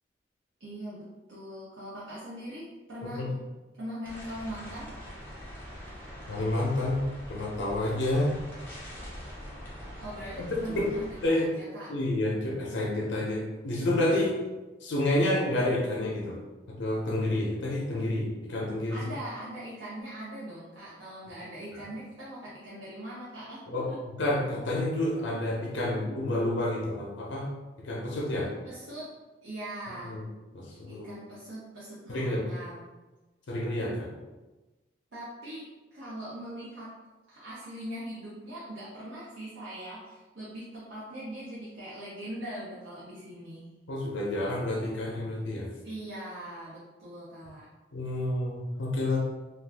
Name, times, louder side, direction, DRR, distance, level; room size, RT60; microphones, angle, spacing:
voice 1, 0.6-3.4 3.8-4.9 10.0-11.9 18.9-24.0 28.6-29.1 29.4-30.2 30.9-32.8 35.1-36.9 37.3-43.7 45.8-47.7, right 1 dB, 75° right, -9 dB, 0.7 m, -41 dB
sound 1, 4.0-11.3, equal, 10° left, 0.5 m, -43 dB
voice 2, 6.3-8.4 10.3-10.9 11.2-11.5 11.9-14.4 14.8-16.4 16.7-19.0 21.7-21.8 23.7-23.9 24.2-27.5 27.8-28.5 30.0-30.2 30.5-31.1 32.1-32.5 33.5-34.1 43.9-45.7 47.9-49.2, left 1 dB, 80° left, -3 dB, 0.5 m, -29 dB
2.4 x 2.3 x 3.4 m, 1.2 s
head